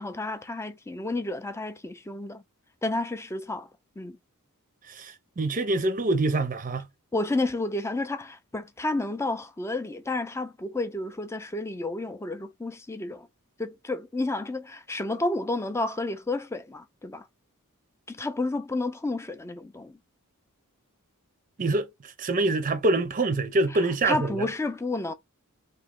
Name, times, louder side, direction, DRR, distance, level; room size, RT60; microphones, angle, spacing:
voice 1, 0.0-2.4 2.8-3.7 4.0-4.2 7.1-13.3 13.6-17.3 18.1-20.0 23.7-25.1, left 2 dB, 10° left, 0.5 m, -31 dB
voice 2, 4.9-6.9 21.6-24.5, right 2 dB, 35° right, 0.6 m, -25 dB
3.0 x 2.8 x 3.7 m
head